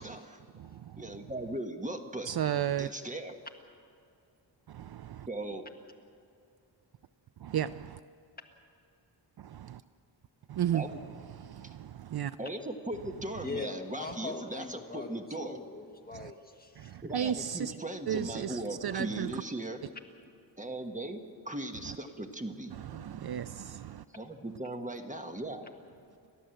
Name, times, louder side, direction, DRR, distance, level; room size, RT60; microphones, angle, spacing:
voice 1, 0.0-0.4 1.0-2.3 2.8-3.4 5.3-5.7 10.7-11.0 11.6-11.7 12.4-15.6 17.0-19.8 20.6-22.7 24.1-25.7, right 1 dB, 15° right, 1.4 m, -38 dB
voice 2, 0.5-1.2 2.2-2.9 4.7-5.3 7.4-8.0 9.4-9.8 10.5-12.4 16.1-16.3 16.8-17.7 18.1-19.4 21.9-22.0 22.7-24.0, right 10 dB, 55° right, 0.5 m, -35 dB
voice 3, 13.4-17.0, left 3 dB, 20° left, 1.7 m, -41 dB
29.5 x 12.5 x 7.8 m
wide cardioid pair, 125°, 45 cm